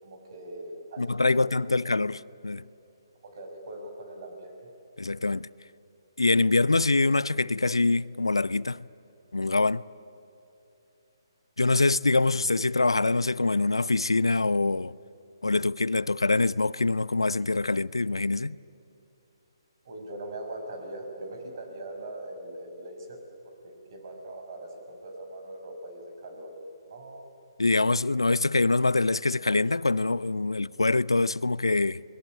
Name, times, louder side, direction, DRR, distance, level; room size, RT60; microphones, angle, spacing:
voice 1, 0.0-1.0 1.3-1.6 3.2-4.7 19.8-23.2 23.4-26.5 26.9-27.3, right 1 dB, 50° right, 6.1 m, -41 dB
voice 2, 1.0-2.6 5.0-5.5 6.2-8.8 9.3-9.8 11.6-14.9 15.4-18.6 27.6-32.0, left 3 dB, 85° left, 0.5 m, -24 dB
29.5 x 21.5 x 8.5 m
figure-of-eight pair, 140°, 3 cm